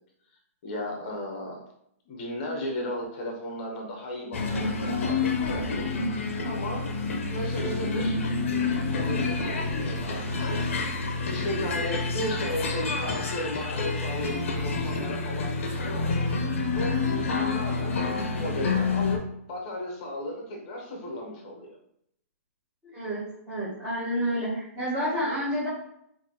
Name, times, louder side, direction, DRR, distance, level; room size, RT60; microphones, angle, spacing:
voice 1, 0.6-1.6 2.0-5.9 6.4-6.9 7.3-8.2 8.6-10.7 11.3-16.1 16.7-19.2 19.5-21.8, left 1 dB, 30° left, 0 dB, 0.9 m, -35 dB
sound 1, 4.3-19.2, left 3 dB, 55° left, 0.7 m, -28 dB
voice 2, 10.1-10.6 22.9-25.7, equal, 5° right, -13 dB, 1.1 m, -30 dB
3.2 x 2.7 x 3.9 m, 0.74 s
hypercardioid pair, 175°, 8 cm